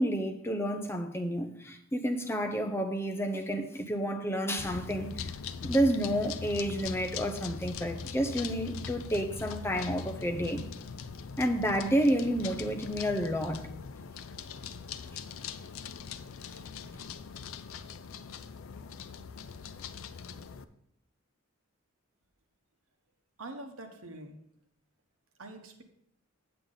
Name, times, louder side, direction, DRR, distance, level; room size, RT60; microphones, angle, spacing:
voice 1, 0.0-5.3 5.6-10.6 11.4-13.7 16.5-16.6, equal, 10° left, 0.6 m, -30 dB
sound 1, 4.6-20.6, left 6 dB, 70° left, 0.5 m, -41 dB
voice 2, 23.4-24.4 25.4-25.8, right 2 dB, 75° right, 1.2 m, -44 dB
8.1 x 7.7 x 3.9 m
head